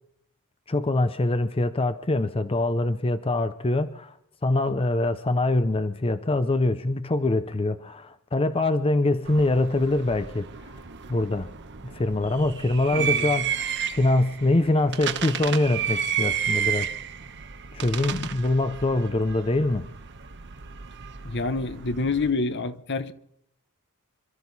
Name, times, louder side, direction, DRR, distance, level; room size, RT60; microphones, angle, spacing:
voice 1, 0.7-4.2 4.4-10.8 11.1-11.5 11.8-16.9 17.7-19.9, left 2 dB, 25° left, 0.6 m, -24 dB
sound 1, 9.2-22.3, right 8 dB, 55° right, 1.0 m, -32 dB
voice 2, 12.9-13.2 21.2-23.1, left 3 dB, 50° left, 0.9 m, -27 dB
26.0 x 13.0 x 4.1 m
head